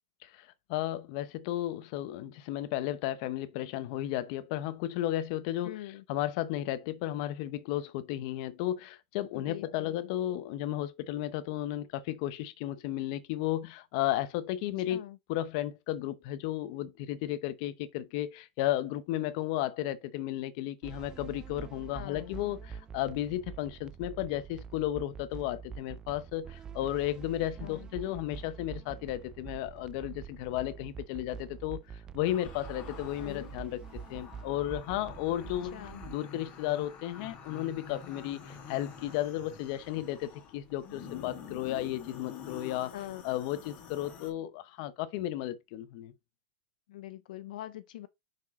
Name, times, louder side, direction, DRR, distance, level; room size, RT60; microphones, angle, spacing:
voice 1, 0.2-5.8 6.1-15.0 15.3-35.7 36.1-42.9 43.2-46.1, left 13 dB, 45° left, 0.8 m, -34 dB
voice 2, 5.6-6.0 9.3-10.1 14.8-15.2 21.9-22.4 27.6-27.9 33.1-33.5 35.4-36.1 42.9-43.2 46.9-48.1, left 14 dB, 70° left, 0.5 m, -44 dB
sound 1, 20.8-36.2, right 7 dB, 15° right, 0.4 m, -46 dB
sound 2, 32.2-44.3, left 7 dB, 30° left, 2.1 m, -47 dB
6.1 x 4.9 x 4.0 m
supercardioid pair, 165°, 5 cm